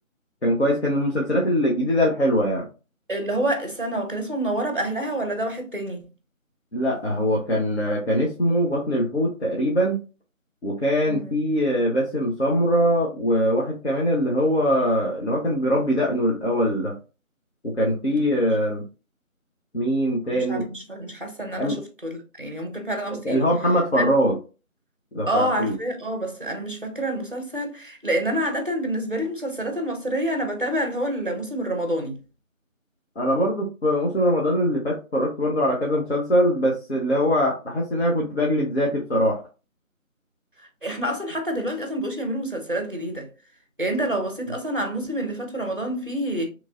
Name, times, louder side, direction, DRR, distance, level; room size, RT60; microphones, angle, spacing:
voice 1, 0.4-2.7 6.7-10.0 10.6-17.0 17.6-18.9 19.7-20.6 21.6-21.8 23.2-24.4 25.1-25.8 33.2-39.4, equal, 50° left, 0.7 m, -22 dB
voice 2, 3.1-6.0 11.1-11.3 18.1-18.3 20.3-23.5 23.9-24.0 25.3-32.2 40.8-43.3 43.8-46.5, right 1 dB, 40° right, 0.6 m, -28 dB
3.0 x 2.5 x 2.4 m
figure-of-eight pair, 170°, 41 cm